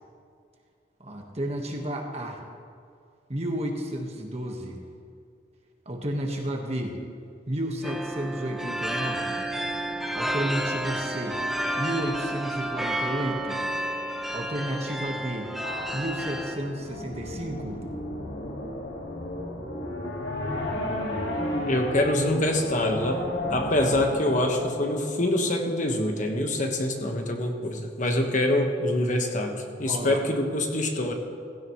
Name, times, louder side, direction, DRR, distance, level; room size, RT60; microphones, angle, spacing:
voice 1, 1.0-2.4 3.3-4.8 5.8-7.0 7.5-9.4 10.1-11.4 11.8-13.6 14.3-15.5 15.9-17.8 21.2-21.7 29.8-30.2, right 1 dB, 35° right, 2 dB, 1.5 m, -32 dB
sound 1, 7.8-16.6, right 1 dB, ahead, 0.6 m, -31 dB
sound 2, 15.6-25.7, left 1 dB, 75° left, 2.1 m, -33 dB
voice 2, 21.7-31.1, left 1 dB, 45° left, 3 dB, 1.4 m, -25 dB
16.0 x 16.0 x 3.2 m, 2.3 s
head